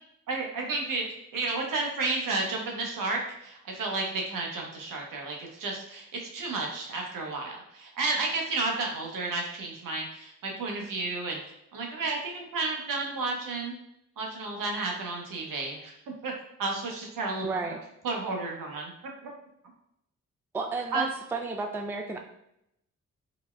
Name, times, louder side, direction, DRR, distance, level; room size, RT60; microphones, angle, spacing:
voice 1, 0.3-1.0 1.3-6.1 6.3-11.4 11.7-13.7 14.2-15.9 16.2-16.3 16.6-17.5 18.0-18.9 19.2-19.3 20.9-21.0, right 3 dB, 70° right, 0 dB, 0.8 m, -32 dB
voice 2, 17.4-17.8 20.5-22.2, right 3 dB, 5° right, 3 dB, 0.3 m, -32 dB
3.9 x 2.1 x 2.2 m, 0.78 s
hypercardioid pair, 40°, 34 cm